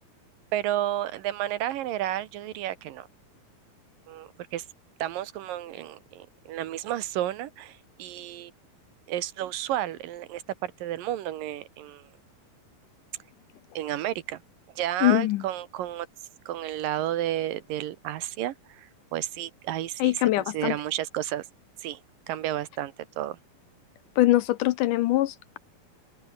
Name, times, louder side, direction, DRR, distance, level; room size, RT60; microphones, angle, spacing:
voice 1, 0.5-3.1 4.1-4.6 5.0-8.5 9.1-12.1 13.8-14.4 14.8-16.1 16.5-20.1 20.5-21.4 21.8-22.0 22.3-23.4, right 13 dB, 70° right, 2.7 m, -31 dB
voice 2, 15.0-15.4 20.0-20.8 24.2-25.6, left 16 dB, 75° left, 2.0 m, -23 dB
open air
omnidirectional pair, 4.3 m